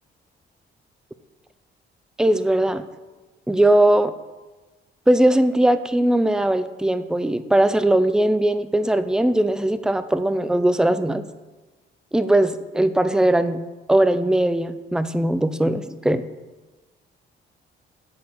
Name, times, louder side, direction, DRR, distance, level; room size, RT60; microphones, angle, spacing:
voice 1, 2.2-2.8 3.5-4.1 5.1-11.2 12.1-13.6 13.9-16.2, right 1 dB, 5° right, 12 dB, 0.4 m, -19 dB
7.3 x 4.6 x 6.0 m, 1.2 s
cardioid pair, 90°, 20 cm